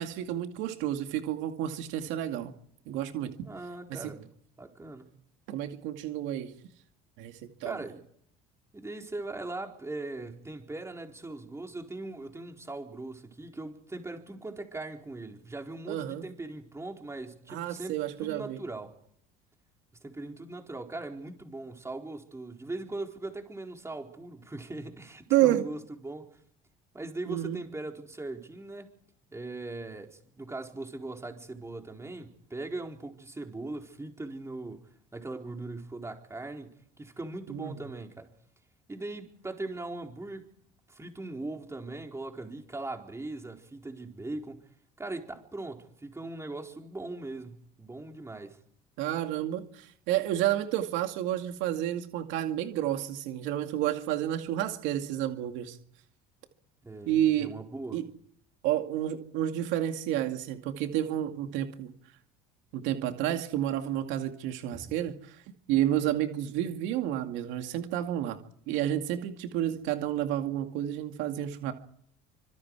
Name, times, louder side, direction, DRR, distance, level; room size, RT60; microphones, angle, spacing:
voice 1, 0.0-2.5 2.9-3.5 3.9-4.1 5.5-6.5 7.2-7.8 15.9-16.2 17.5-18.6 25.3-25.7 27.3-27.6 37.5-37.7 49.0-55.8 57.1-57.5 57.9-58.0 58.6-61.9 62.7-65.4 65.7-68.4 68.7-71.7, right 12 dB, 75° right, 2.3 m, -30 dB
voice 2, 3.4-4.3 4.6-5.1 7.6-8.0 8.7-19.0 20.0-26.3 26.9-28.9 29.3-38.3 38.9-40.5 40.9-44.6 45.0-48.6 56.8-58.0 64.7-64.9, right 2 dB, 15° right, 4.3 m, -40 dB
27.0 x 25.5 x 4.8 m
supercardioid pair, 90°, 20 cm